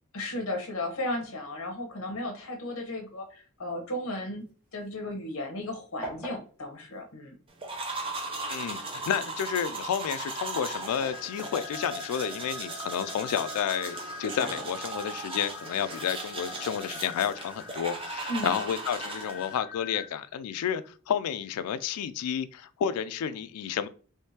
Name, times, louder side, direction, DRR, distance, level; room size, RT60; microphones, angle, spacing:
voice 1, 0.1-7.4 18.3-18.5, left 1 dB, 65° left, 0.9 m, -35 dB
sound 1, 4.4-5.7 6.0-8.0 8.8-11.4 11.9-13.1 14.2-15.3 16.4-17.5, equal, 5° right, 1.4 m, -45 dB
sound 2, 7.6-19.6, right 3 dB, 25° right, 0.5 m, -38 dB
voice 2, 8.5-23.9, left 8 dB, 85° left, 0.3 m, -31 dB
sound 3, 10.1-20.1, left 4 dB, 40° left, 0.6 m, -44 dB
3.5 x 3.1 x 2.8 m
head